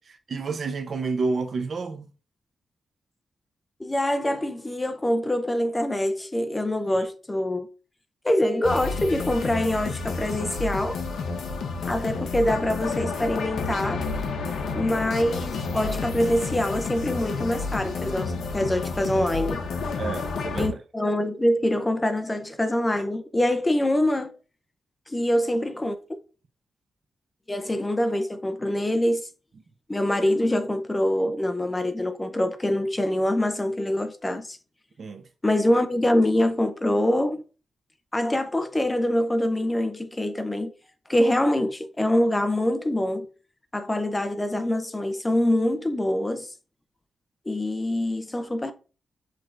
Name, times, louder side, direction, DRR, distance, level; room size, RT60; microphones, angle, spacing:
voice 1, 0.3-2.1 6.9-7.0 20.0-20.8 35.0-35.2, right 4 dB, 50° right, 0.6 m, -29 dB
voice 2, 3.8-7.7 8.2-11.0 11.9-14.0 14.7-19.6 20.6-24.3 25.1-26.0 27.5-29.3 29.9-34.6 35.4-37.4 38.1-40.7 41.1-43.3 43.7-46.5 47.5-48.7, left 1 dB, 15° left, 0.4 m, -24 dB
sound 1, 8.6-20.7, left 4 dB, 85° left, 0.7 m, -30 dB
6.0 x 3.2 x 2.4 m
wide cardioid pair, 135°, 0 cm